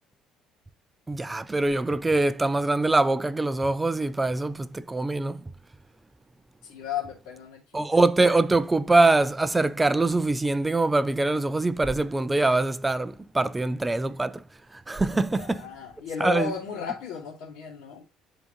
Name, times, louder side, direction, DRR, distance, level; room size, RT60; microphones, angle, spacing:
voice 1, 1.1-5.4 7.7-14.4 14.9-15.6 16.2-16.5, right 2 dB, 10° right, 0.4 m, -23 dB
voice 2, 6.6-8.0 15.1-18.0, left 7 dB, 90° left, 2.5 m, -35 dB
10.5 x 3.9 x 3.0 m
cardioid pair, 155°, 0 cm